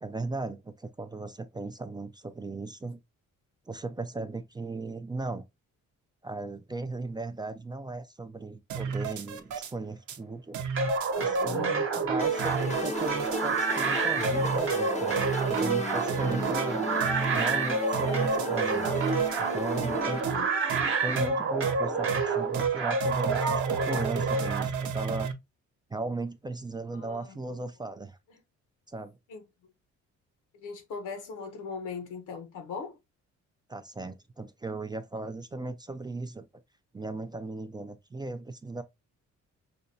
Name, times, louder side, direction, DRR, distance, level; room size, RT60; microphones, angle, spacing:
voice 1, 0.0-3.0 3.7-5.4 6.2-10.6 11.2-16.9 17.3-19.0 19.4-20.3 21.0-25.3 25.9-28.2 28.9-29.1 33.7-36.5 36.9-38.8, right 3 dB, 15° right, 0.3 m, -37 dB
sound 1, 8.7-9.7 10.1-10.2 10.5-11.6 11.9-12.0 12.4-13.4 13.8-13.9 14.2-14.8 15.2-15.7 16.1-16.6 17.0-17.6 17.9-18.5 18.8-19.4 19.8-19.9 20.2-20.4 20.7-20.8 21.2-21.3 21.6-21.7 22.1-22.2 22.5-22.7 23.0-25.3, right 6 dB, 75° right, 0.7 m, -33 dB
sound 2, 10.8-24.6, right 4 dB, 45° right, 0.9 m, -28 dB
voice 2, 11.2-11.8 20.0-20.5 26.9-27.6 29.3-29.5 30.5-33.0, left 5 dB, 85° left, 1.0 m, -40 dB
sound 3, 12.2-20.2, left 3 dB, 25° left, 0.7 m, -35 dB
5.0 x 2.2 x 2.6 m
cardioid pair, 90°, 30 cm